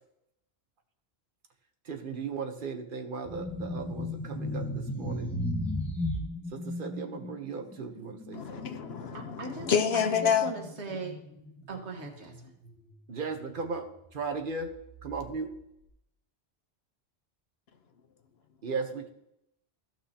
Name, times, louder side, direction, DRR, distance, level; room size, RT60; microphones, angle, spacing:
voice 1, 1.9-5.3 6.5-8.6 13.1-13.9 14.1-14.7 15.0-15.5 18.6-19.1, right 4 dB, 55° right, 5 dB, 1.1 m, -36 dB
sound 1, 3.2-13.2 13.5-13.8 14.5-15.5, left 1 dB, ahead, 1.4 m, -37 dB
voice 2, 8.3-10.5, left 7 dB, 70° left, 6 dB, 1.1 m, -28 dB
voice 3, 9.1-10.1 10.4-11.1 11.7-12.3, right 3 dB, 90° right, 3 dB, 1.7 m, -39 dB
14.0 x 6.0 x 2.9 m, 0.80 s
omnidirectional pair, 1.1 m